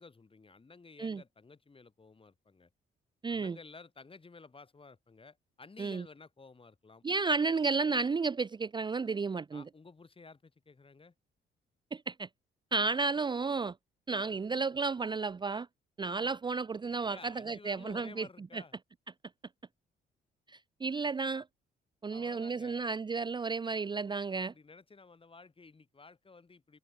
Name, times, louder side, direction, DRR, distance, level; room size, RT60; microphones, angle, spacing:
voice 1, 0.0-2.7 3.3-7.0 9.5-11.1 17.0-18.7 22.1-22.8 24.4-26.8, left 4 dB, 25° left, 5.6 m, -54 dB
voice 2, 3.2-3.6 5.8-6.0 7.0-9.6 11.9-12.3 12.7-13.7 14.1-15.7 16.0-18.3 18.5-18.6 20.5-21.4 22.0-24.5, right 4 dB, 25° right, 0.5 m, -32 dB
cardioid pair, 90°, 20 cm